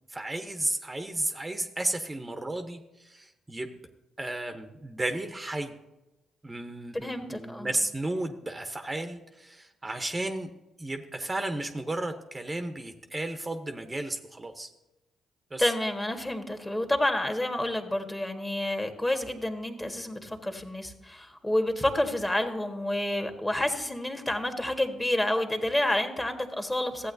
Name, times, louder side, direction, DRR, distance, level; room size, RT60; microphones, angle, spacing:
voice 1, 0.1-3.8 4.2-5.7 6.4-10.5 10.8-14.7 15.5-15.7, right 2 dB, 20° right, 7 dB, 0.8 m, -33 dB
voice 2, 6.9-7.7 15.6-27.1, left 1 dB, 20° left, 6 dB, 1.5 m, -29 dB
14.5 x 8.3 x 2.7 m, 1.0 s
hypercardioid pair, 45°, 0 cm